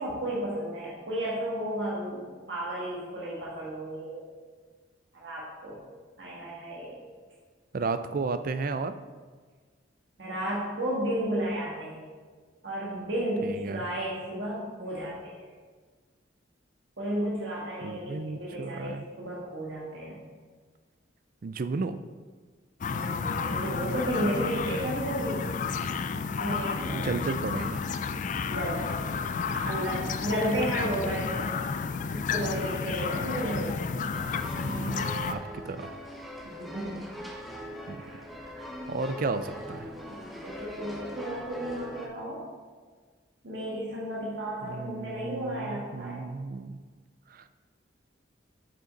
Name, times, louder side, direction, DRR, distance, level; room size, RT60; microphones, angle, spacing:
voice 1, 0.0-4.2 5.1-5.8 6.2-7.0 10.2-12.1 12.6-15.5 17.0-20.2 22.9-25.4 26.4-27.1 28.5-29.0 29.5-31.5 32.1-33.9 36.4-37.0 37.9-38.5 40.1-42.5 43.4-46.2, right 1 dB, 65° right, -6 dB, 1.6 m, -33 dB
voice 2, 7.7-9.0 13.4-13.8 17.8-19.0 21.4-22.0 26.9-27.8 34.6-36.0 37.9-38.0 38.6-39.9 44.6-46.8 47.3-47.4, right 3 dB, 45° right, 11 dB, 0.4 m, -33 dB
sound 1, 22.8-35.3, left 5 dB, 40° left, 0.3 m, -31 dB
sound 2, 34.1-42.1, equal, ahead, 0.7 m, -41 dB
6.9 x 6.4 x 4.0 m, 1.5 s
head